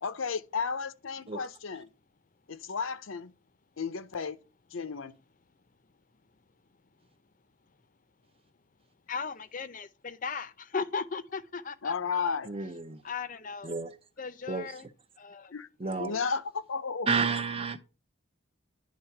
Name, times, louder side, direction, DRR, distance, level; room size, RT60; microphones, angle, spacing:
voice 1, 0.0-1.9 2.5-3.3 3.8-4.4 4.7-5.1 11.8-12.5 15.5-15.7 16.0-17.3, left 5 dB, 75° left, 0.7 m, -33 dB
voice 2, 9.1-12.4 13.0-13.7 14.2-14.9 15.2-15.5 15.8-16.2, left 5 dB, 40° left, 0.6 m, -37 dB
voice 3, 12.5-13.0 13.6-14.0 14.5-14.7 15.8-16.1 17.1-17.8, right 4 dB, 25° right, 0.6 m, -31 dB
10.5 x 3.6 x 5.8 m
head